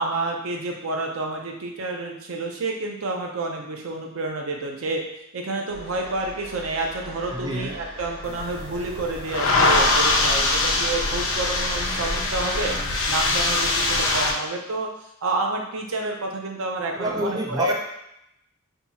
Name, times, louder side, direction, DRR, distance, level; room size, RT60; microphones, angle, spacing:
voice 1, 0.0-5.0 5.3-14.9 15.2-17.7, right 2 dB, 70° right, 1 dB, 0.6 m, -29 dB
sound 1, 5.7-12.7, equal, 50° right, 1.1 m, -40 dB
voice 2, 7.3-7.8 16.9-17.7, equal, 20° right, -1 dB, 0.4 m, -27 dB
sound 2, 8.2-14.3, left 2 dB, 65° left, 0.5 m, -23 dB
2.7 x 2.3 x 4.0 m, 0.80 s
head